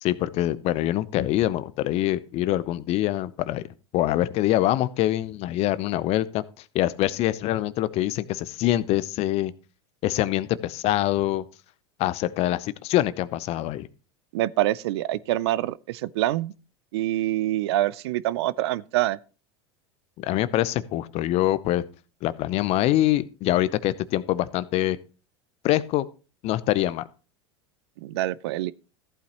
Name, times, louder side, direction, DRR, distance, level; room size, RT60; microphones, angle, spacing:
voice 1, 0.0-3.6 3.9-6.4 6.7-9.5 10.0-11.4 12.0-13.9 20.2-21.8 22.2-25.0 25.6-26.1 26.4-27.1, left 14 dB, 45° left, 0.7 m, -24 dB
voice 2, 14.3-16.5 16.9-19.2 28.0-28.7, right 15 dB, 65° right, 0.5 m, -25 dB
14.5 x 8.4 x 3.0 m
hypercardioid pair, 85°, 14 cm